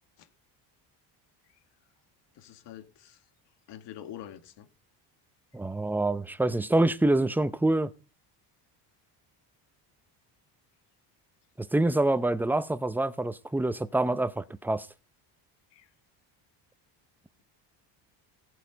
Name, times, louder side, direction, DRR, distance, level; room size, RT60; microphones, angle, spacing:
voice 1, 2.3-3.2 3.7-4.7 15.7-15.9, left 11 dB, 65° left, 2.1 m, -46 dB
voice 2, 5.5-7.9 11.6-14.9, right 2 dB, 5° right, 0.7 m, -26 dB
16.5 x 8.4 x 5.3 m
cardioid pair, 115°, 44 cm